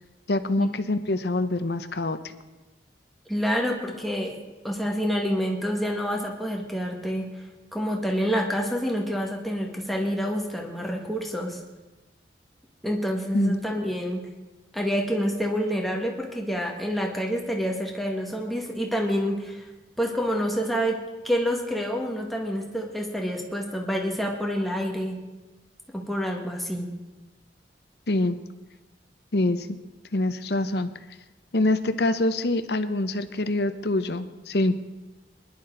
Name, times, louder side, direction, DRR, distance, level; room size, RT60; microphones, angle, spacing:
voice 1, 0.3-2.2 13.3-13.6 28.1-28.4 29.3-29.7 30.1-30.9 31.5-34.8, left 2 dB, 65° left, 11 dB, 0.8 m, -25 dB
voice 2, 3.3-4.3 4.6-7.3 7.7-11.6 12.8-14.3 14.7-19.7 20.0-21.0 21.2-25.2 25.9-26.9, equal, ahead, -1 dB, 1.8 m, -27 dB
22.0 x 11.5 x 3.9 m, 1.1 s
head